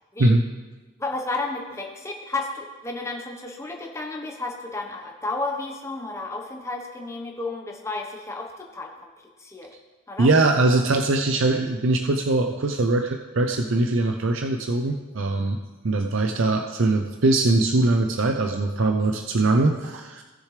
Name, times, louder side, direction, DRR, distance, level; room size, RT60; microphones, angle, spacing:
voice 1, 1.0-9.1 9.4-9.7 10.1-10.3, left 3 dB, 15° left, 1 dB, 1.1 m, -32 dB
voice 2, 10.2-15.6 15.8-20.2, right 2 dB, 65° right, 4 dB, 0.6 m, -21 dB
17.5 x 6.6 x 3.3 m, 1.2 s
head